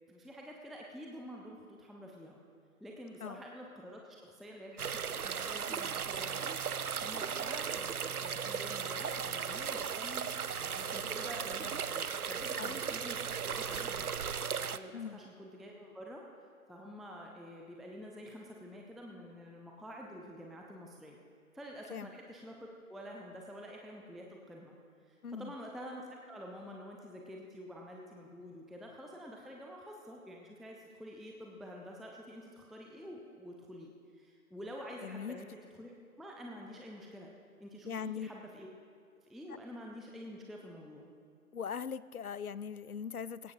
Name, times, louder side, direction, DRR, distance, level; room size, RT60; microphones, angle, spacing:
voice 1, 0.1-2.4 2.8-6.6 7.0-10.3 10.6-14.1 14.6-16.2 16.7-21.2 21.5-24.7 25.1-35.9 36.2-37.3 37.6-38.7 39.2-41.1, equal, ahead, -1 dB, 0.5 m, -48 dB
sound 1, 4.8-14.8, right 6 dB, 75° right, 0.6 m, -36 dB
voice 2, 35.0-35.4 37.9-38.3 41.5-43.5, left 7 dB, 75° left, 17 dB, 0.6 m, -40 dB
17.5 x 16.0 x 2.7 m, 2.2 s
figure-of-eight pair, 170°, 44 cm